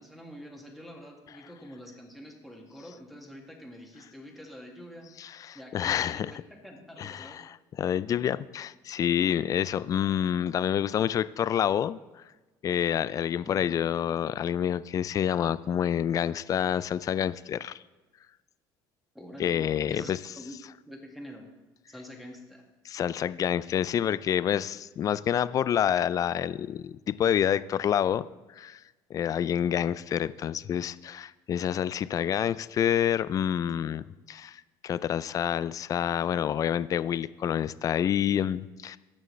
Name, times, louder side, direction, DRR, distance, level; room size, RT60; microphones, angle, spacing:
voice 1, 0.0-5.1 5.5-7.4 19.1-20.6 20.9-21.4 21.9-22.6, equal, ahead, 1 dB, 1.9 m, -46 dB
voice 2, 5.2-6.3 7.0-12.0 12.6-17.8 19.4-20.2 22.8-28.2 28.6-28.8 29.1-39.0, left 9 dB, 35° left, 17 dB, 0.3 m, -28 dB
15.5 x 6.3 x 3.2 m, 1.2 s
supercardioid pair, 105°, 10 cm